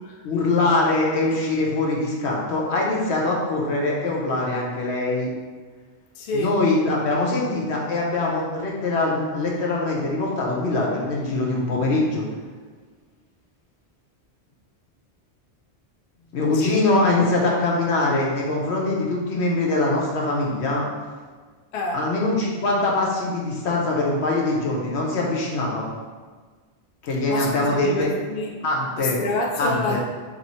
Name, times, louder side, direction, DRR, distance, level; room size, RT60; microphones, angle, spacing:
voice 1, 0.2-5.3 6.3-12.2 16.3-20.8 21.9-25.9 27.0-28.1 28.6-29.2 29.6-30.0, left 2 dB, 85° left, -3 dB, 1.1 m, -23 dB
voice 2, 6.1-6.6 16.5-16.9 21.7-22.0 27.3-28.6 29.0-30.0, left 2 dB, 50° left, 0 dB, 0.6 m, -28 dB
3.1 x 3.0 x 4.1 m, 1.5 s
omnidirectional pair, 1.1 m